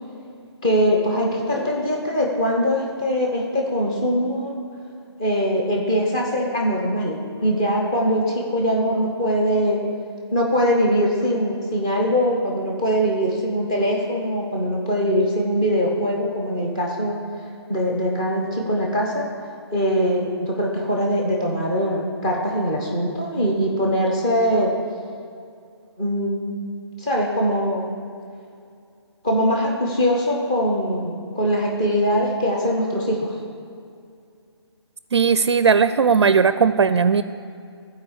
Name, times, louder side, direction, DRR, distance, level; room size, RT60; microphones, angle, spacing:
voice 1, 0.6-4.5 5.2-9.8 10.3-17.2 17.7-19.2 19.7-24.7 26.0-26.6 27.0-28.0 29.2-33.3, equal, 10° left, -2 dB, 0.8 m, -22 dB
voice 2, 35.1-37.2, right 6 dB, 70° right, 13 dB, 0.4 m, -17 dB
14.5 x 4.9 x 7.2 m, 2.4 s
hypercardioid pair, 180°, 15 cm